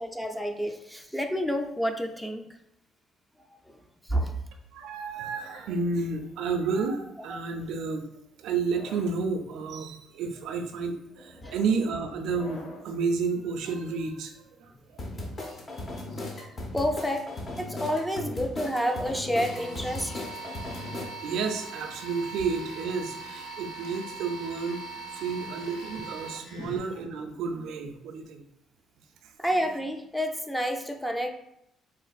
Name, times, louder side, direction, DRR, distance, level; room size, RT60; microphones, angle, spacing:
voice 1, 0.0-2.5 4.1-4.4 7.3-7.4 11.4-11.5 16.7-17.3 17.6-20.3 25.4-25.6 26.6-26.8 29.4-31.3, equal, 5° left, 5 dB, 0.4 m, -29 dB
voice 2, 4.7-8.1 8.4-14.3 14.6-15.1 20.9-24.8 25.1-28.4 29.2-29.3, right 4 dB, 75° right, 5 dB, 0.4 m, -31 dB
sound 1, 5.1-6.5 7.3-7.7 8.5-9.2 9.9-10.2 11.2-13.0, left 1 dB, 85° left, 1.1 m, -49 dB
sound 2, 15.0-21.0, left 2 dB, 40° left, 0.7 m, -37 dB
sound 3, 19.4-26.8, right 3 dB, 65° left, 1.1 m, -41 dB
4.1 x 2.4 x 2.4 m, 0.78 s
supercardioid pair, 70°, 0 cm